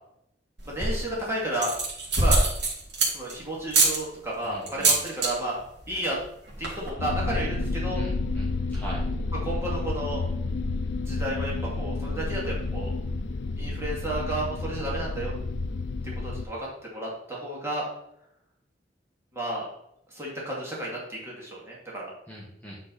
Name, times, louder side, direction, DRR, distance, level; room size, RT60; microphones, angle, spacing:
voice 1, 0.6-1.7 2.2-2.4 3.1-5.6 5.9-6.2 6.6-8.0 9.4-10.2 11.1-12.9 13.6-15.3 16.0-17.9 19.3-19.6 20.1-22.1, right 1 dB, 15° right, -5 dB, 2.4 m, -32 dB
sound 1, 0.6-1.1 1.5-3.3 3.7-4.0 4.7-5.3 5.6-5.9 6.2-6.3 6.5-6.9, right 3 dB, 85° right, 2.1 m, -23 dB
voice 2, 4.4-4.9 7.9-9.0 22.3-22.8, equal, 10° left, -6 dB, 1.3 m, -42 dB
sound 2, 7.0-16.5, left 3 dB, 70° left, 0.4 m, -30 dB
8.8 x 3.9 x 4.1 m, 0.77 s
head